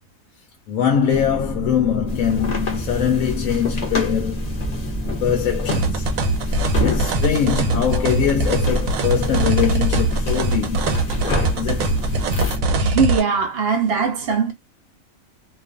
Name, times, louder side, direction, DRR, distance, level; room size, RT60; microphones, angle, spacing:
voice 1, 0.7-4.5 5.2-6.1 6.8-11.0 11.5-12.0, left 8 dB, 80° left, 1.0 m, -22 dB
sound 1, 1.1-12.8, left 1 dB, 15° right, 0.4 m, -30 dB
sound 2, 2.1-12.6, left 1 dB, 40° left, 0.6 m, -27 dB
sound 3, 5.7-13.2, right 2 dB, 90° right, 1.1 m, -22 dB
voice 2, 12.8-14.5, right 5 dB, 60° right, 0.7 m, -20 dB
2.4 x 2.4 x 2.4 m
omnidirectional pair, 1.4 m